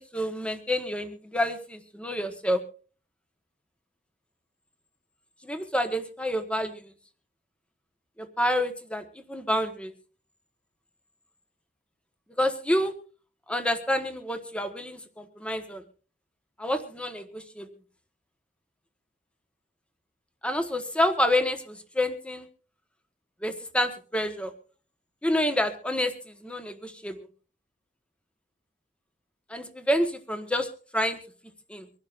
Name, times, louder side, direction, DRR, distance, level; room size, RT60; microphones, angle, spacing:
voice 1, 0.0-2.6 5.4-6.9 8.2-9.9 12.4-12.9 13.5-15.8 16.6-17.7 20.4-22.5 23.4-24.5 25.2-27.2 29.5-30.7 30.9-31.2 31.7-31.9, left 1 dB, 5° left, 7 dB, 1.3 m, -28 dB
24.5 x 11.5 x 2.5 m, 0.40 s
head